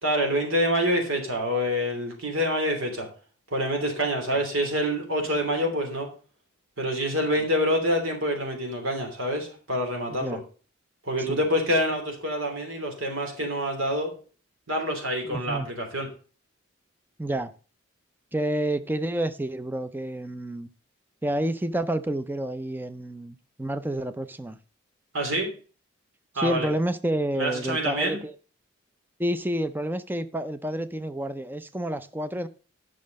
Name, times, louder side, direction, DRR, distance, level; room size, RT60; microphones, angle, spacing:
voice 1, 0.0-3.1 3.5-6.1 6.8-10.4 11.0-14.1 14.7-16.1 25.1-25.5 26.3-26.7 27.3-28.2, equal, 75° right, 3.0 m, -26 dB
voice 2, 15.2-15.7 17.2-17.5 18.3-20.7 21.2-24.6 26.3-28.4 29.2-32.5, right 1 dB, 10° right, 0.5 m, -29 dB
11.0 x 6.3 x 5.3 m
head